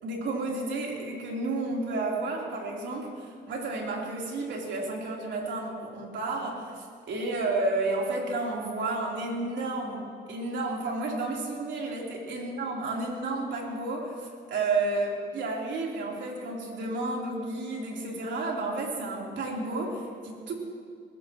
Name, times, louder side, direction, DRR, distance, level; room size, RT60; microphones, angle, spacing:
voice 1, 0.0-20.5, right 2 dB, 65° right, -2 dB, 3.6 m, -31 dB
21.5 x 15.5 x 3.1 m, 2.4 s
cardioid pair, 90°, 20 cm